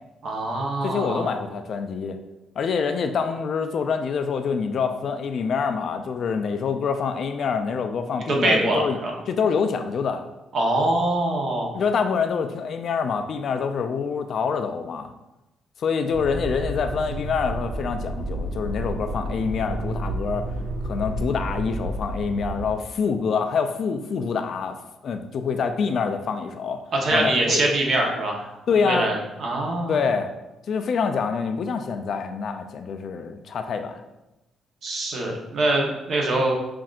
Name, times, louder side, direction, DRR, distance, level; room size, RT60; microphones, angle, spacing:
voice 1, 0.2-1.3 8.3-9.1 10.5-11.7 27.0-28.5 28.8-29.9 34.8-36.5, right 2 dB, 60° right, 0 dB, 0.8 m, -23 dB
voice 2, 0.8-2.2 2.6-9.0 9.3-10.3 11.7-15.1 15.8-20.5 20.8-24.8 25.0-26.8 27.1-27.6 28.7-29.1 29.9-30.3 30.7-34.0, left 5 dB, 60° left, 7 dB, 0.3 m, -26 dB
Motor vehicle (road), 16.1-22.7, right 1 dB, 85° right, 0.5 m, -30 dB
5.7 x 2.5 x 2.4 m, 0.98 s
cardioid pair, 90°, 0 cm